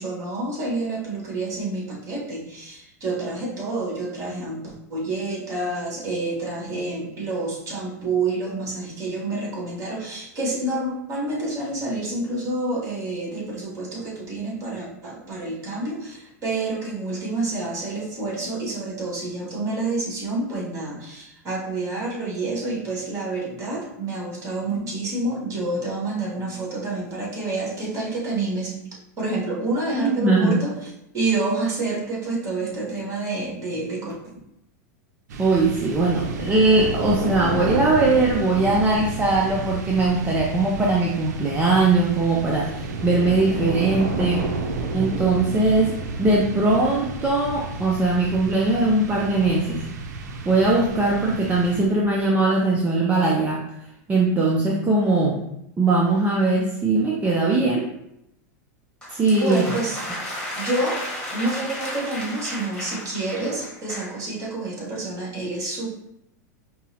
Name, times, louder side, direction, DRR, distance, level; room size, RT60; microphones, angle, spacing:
voice 1, 0.0-28.9 29.2-30.7 31.1-34.1 59.3-60.2 60.5-65.9, right 2 dB, 35° right, -4 dB, 1.5 m, -28 dB
voice 2, 30.0-30.6 35.4-44.5 44.9-49.8 50.5-53.6 54.1-55.4 55.8-57.9 59.1-59.6, right 2 dB, 15° right, -3 dB, 0.5 m, -20 dB
sound 1, 35.3-52.2, right 3 dB, 80° right, 0.5 m, -31 dB
sound 2, 59.0-64.2, left 1 dB, 10° left, 1.3 m, -34 dB
5.2 x 2.0 x 2.8 m, 0.80 s
hypercardioid pair, 120°, 9 cm